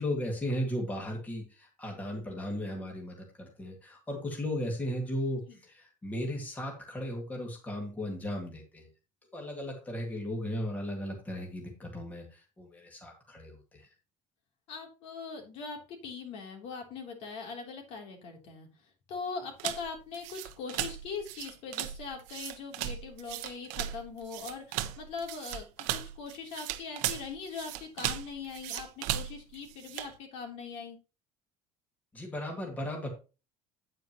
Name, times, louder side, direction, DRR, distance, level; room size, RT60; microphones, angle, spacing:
voice 1, 0.0-8.9 9.3-13.9 32.1-33.1, equal, 10° left, 0 dB, 2.2 m, -36 dB
voice 2, 14.7-18.7 19.1-31.0, left 5 dB, 55° left, 2 dB, 3.3 m, -41 dB
sound 1, 19.6-30.1, right 13 dB, 75° right, 1.0 m, -37 dB
9.4 x 9.2 x 3.0 m, 0.31 s
cardioid pair, 175°, 13 cm